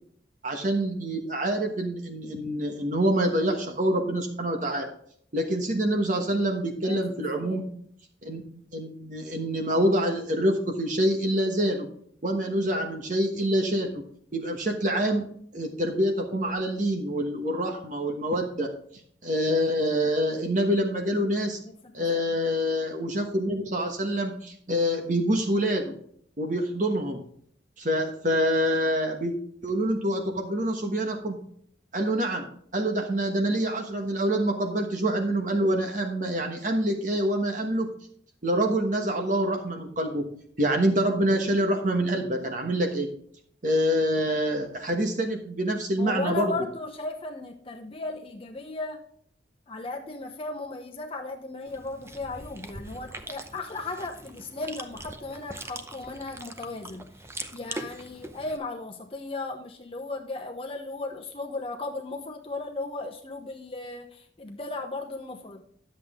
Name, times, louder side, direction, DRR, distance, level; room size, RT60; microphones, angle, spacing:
voice 1, 0.4-4.9 5.3-7.7 8.2-8.4 8.7-11.9 12.2-14.0 14.3-15.3 15.5-18.7 19.2-21.6 21.9-26.0 26.4-27.2 27.8-29.3 29.6-31.4 31.9-32.4 32.7-37.9 38.4-40.3 40.6-43.1 43.6-46.5, equal, 45° right, 3 dB, 1.2 m, -26 dB
voice 2, 7.4-7.7 21.6-22.1 46.0-49.0 49.7-57.1 57.5-65.6, left 3 dB, 30° left, 2 dB, 0.9 m, -36 dB
Chewing mastication, 51.7-58.6, right 2 dB, 15° right, 0.7 m, -42 dB
11.0 x 7.6 x 3.7 m, 0.62 s
head